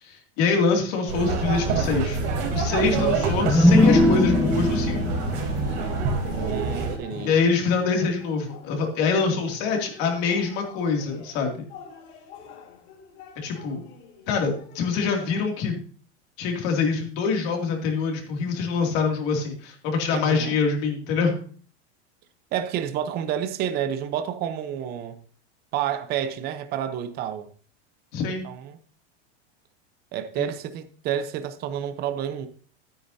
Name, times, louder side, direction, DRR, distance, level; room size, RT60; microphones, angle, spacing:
voice 1, 0.0-2.2 2.5-5.0 7.2-11.6 13.4-13.8 14.3-15.8 16.4-21.4 28.1-28.5 30.4-30.5, left 5 dB, 45° left, 2.6 m, -25 dB
sound 1, 1.0-15.4, left 6 dB, 65° left, 3.5 m, -43 dB
sound 2, 1.1-7.0, right 4 dB, 50° right, 3.3 m, -26 dB
voice 2, 2.8-3.2 6.5-7.3 20.1-20.6 22.5-25.2 25.7-27.5 28.4-28.8 30.1-32.5, right 9 dB, 30° right, 0.8 m, -29 dB
sound 3, 3.0-6.7, left 2 dB, 5° left, 0.9 m, -21 dB
12.0 x 9.6 x 2.8 m
supercardioid pair, 160°, 34 cm